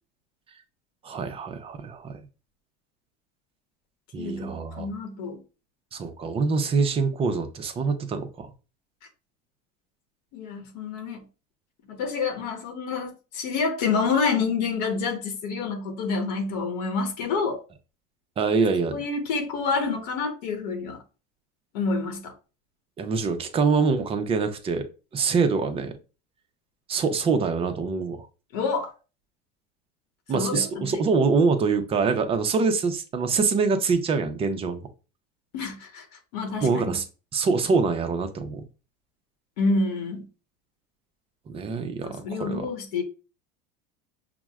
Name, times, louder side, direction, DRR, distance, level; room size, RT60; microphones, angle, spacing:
voice 1, 1.0-2.2 4.1-4.9 5.9-8.5 18.4-19.0 23.0-25.9 26.9-28.3 30.3-34.8 36.6-37.0 37.3-38.6 41.5-42.7, right 4 dB, 25° right, 0.6 m, -25 dB
voice 2, 4.2-5.4 10.3-11.2 11.9-17.6 18.9-21.0 21.7-22.3 28.5-28.9 30.3-31.0 35.5-36.0 36.3-36.9 39.6-40.2 42.0-43.0, left 4 dB, 80° left, 1.0 m, -28 dB
5.8 x 2.1 x 2.3 m
supercardioid pair, 125°, 21 cm